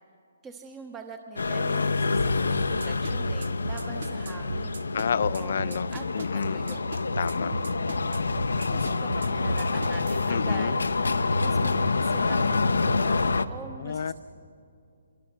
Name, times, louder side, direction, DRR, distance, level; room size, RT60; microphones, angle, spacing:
voice 1, 0.4-4.8 5.1-6.8 8.7-11.0 11.4-14.1, right 4 dB, 15° right, 4 dB, 1.1 m, -44 dB
sound 1, 1.4-13.5, left 3 dB, 90° left, 0.9 m, -27 dB
sound 2, 2.6-10.3, right 3 dB, 70° right, 0.9 m, -36 dB
voice 2, 4.9-5.9 6.1-6.6 7.2-7.5 10.3-10.7 13.8-14.1, left 7 dB, 60° left, 16 dB, 0.5 m, -29 dB
25.5 x 22.0 x 6.1 m, 2.4 s
hypercardioid pair, 150°, 0 cm